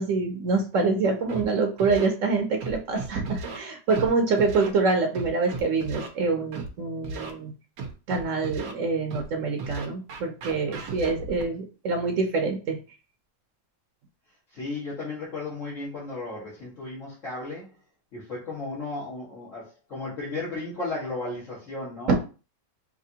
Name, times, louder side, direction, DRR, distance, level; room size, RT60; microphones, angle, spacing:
voice 1, 0.0-7.5 8.1-12.8 22.1-22.2, right 4 dB, 70° right, 4 dB, 1.1 m, -25 dB
Scratching (performance technique), 1.3-1.4 1.8-2.1 2.6-3.6 3.9-4.1 4.4-4.7 5.1-6.1 6.5-6.7 7.0-7.3 7.8-8.7 9.1-9.3 9.6-11.4, right 3 dB, 90° right, 1.2 m, -35 dB
voice 2, 10.5-10.9 14.5-17.7 18.1-22.2, left 3 dB, 65° left, -8 dB, 1.9 m, -35 dB
5.1 x 2.7 x 2.8 m, 0.34 s
omnidirectional pair, 1.5 m